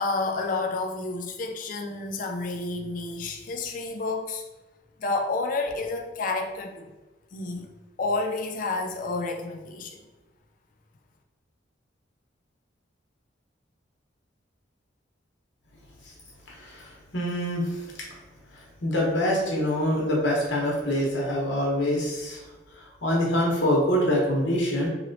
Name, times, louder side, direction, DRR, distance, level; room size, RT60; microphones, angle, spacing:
voice 1, 0.0-4.4 5.0-6.9 7.3-7.7 8.0-10.0, left 3 dB, 45° left, 3 dB, 0.3 m, -30 dB
voice 2, 16.5-17.8 18.5-22.4 23.0-24.9, left 1 dB, 65° left, -3 dB, 0.9 m, -25 dB
2.9 x 2.9 x 2.6 m, 1.1 s
head